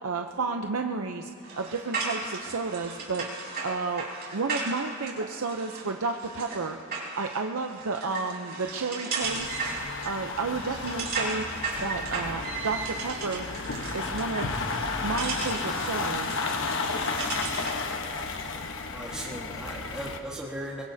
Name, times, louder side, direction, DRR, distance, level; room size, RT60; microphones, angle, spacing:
voice 1, 0.0-1.3 1.6-3.3 3.6-4.1 4.3-6.8 7.1-9.6 10.0-11.5 11.8-13.5 13.9-14.5 15.0-16.5, right 4 dB, 75° right, 4 dB, 0.7 m, -31 dB
sound 1, 1.4-17.8, right 3 dB, 50° right, 4.3 m, -36 dB
sound 2, 9.2-20.2, left 3 dB, 60° left, 1.1 m, -33 dB
voice 2, 18.9-20.8, right 1 dB, 5° right, -6 dB, 1.6 m, -37 dB
23.5 x 22.0 x 2.8 m, 2.4 s
head